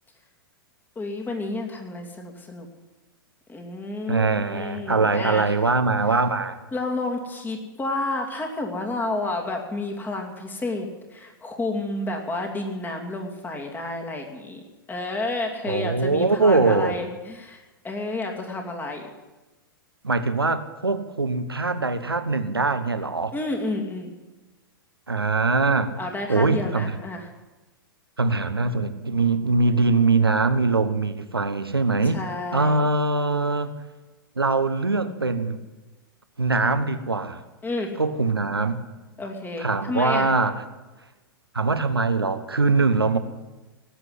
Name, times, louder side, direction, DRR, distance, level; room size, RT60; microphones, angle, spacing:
voice 1, 1.0-2.7 3.5-5.5 6.7-14.6 14.9-19.1 23.3-24.1 26.0-27.2 32.1-32.9 37.6-37.9 39.2-40.3, left 2 dB, 15° left, 2 dB, 2.7 m, -30 dB
voice 2, 4.1-6.6 15.7-17.0 20.0-23.3 25.1-25.9 26.3-27.0 28.2-32.2 32.5-33.7 34.4-35.6 36.4-37.4 38.0-38.8 39.6-40.6 41.5-43.2, right 3 dB, 90° right, 10 dB, 1.2 m, -22 dB
18.5 x 8.1 x 9.5 m, 1.1 s
figure-of-eight pair, 105°, 12 cm